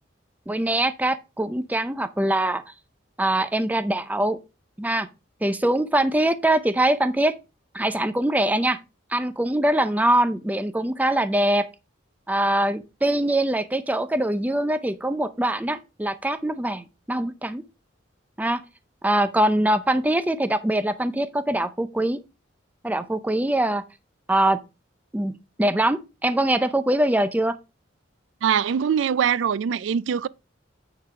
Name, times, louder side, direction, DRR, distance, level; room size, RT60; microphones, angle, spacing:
voice 1, 0.5-2.6 3.2-4.4 4.8-5.1 5.4-7.4 7.7-8.8 9.1-11.7 12.3-17.6 18.4-18.6 19.0-22.2 22.8-23.8 24.3-24.6 25.1-25.3 25.6-27.6, right 1 dB, 10° right, 0.5 m, -23 dB
voice 2, 28.4-30.3, right 8 dB, 75° right, 0.3 m, -22 dB
9.4 x 3.9 x 4.8 m
head